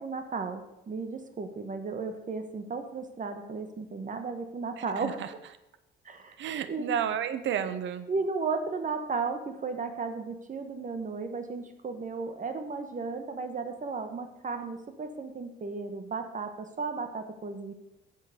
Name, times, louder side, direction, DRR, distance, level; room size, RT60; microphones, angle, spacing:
voice 1, 0.0-5.2 6.0-6.4 6.7-6.9 8.1-17.7, right 4 dB, 40° right, 7 dB, 1.2 m, -34 dB
voice 2, 4.8-5.3 6.4-8.1, right 9 dB, 75° right, 12 dB, 0.9 m, -32 dB
8.1 x 6.7 x 6.6 m, 0.88 s
cardioid pair, 90°, 20 cm